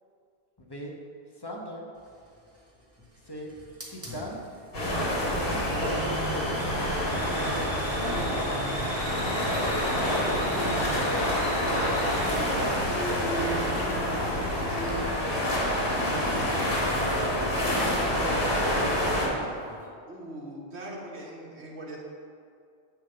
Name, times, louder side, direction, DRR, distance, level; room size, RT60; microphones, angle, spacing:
voice 1, 0.6-0.9 1.4-1.9 3.3-3.5 3.9-4.4 5.5-5.9 6.3-6.6 17.8-19.6, equal, 25° left, -1 dB, 1.0 m, -40 dB
Hiss, 2.0-19.9, right 1 dB, 15° right, 1.3 m, -45 dB
sound 1, 4.7-19.3, equal, 60° left, 1.9 m, -27 dB
voice 2, 8.8-10.1 11.5-15.1 16.0-16.3 20.1-22.0, right 1 dB, 80° right, -3 dB, 1.7 m, -41 dB
sound 2, 9.1-19.3, equal, 90° left, 1.9 m, -35 dB
9.9 x 3.6 x 6.7 m, 2.3 s
omnidirectional pair, 1.1 m